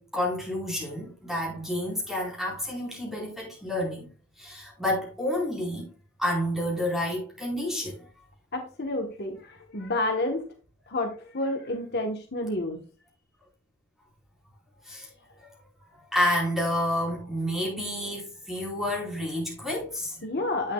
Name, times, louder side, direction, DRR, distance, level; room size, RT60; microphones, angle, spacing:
voice 1, 0.0-4.1 4.4-5.9 6.2-8.0 14.8-15.1 16.1-20.2, left 1 dB, ahead, 4.6 m, -29 dB
voice 2, 8.5-10.5 10.9-12.8 20.2-20.7, left 2 dB, 50° left, 1.3 m, -30 dB
10.5 x 8.4 x 2.3 m
head